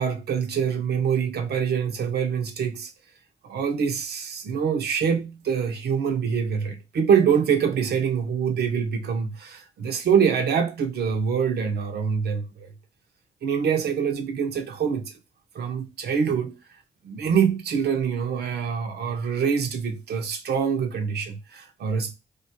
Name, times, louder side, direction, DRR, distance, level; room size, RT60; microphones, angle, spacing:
voice 1, 0.0-2.9 3.4-12.7 13.4-15.1 15.5-16.5 17.0-22.1, right 7 dB, 70° right, 0.5 m, -25 dB
2.3 x 2.2 x 2.6 m
supercardioid pair, 40°, 18 cm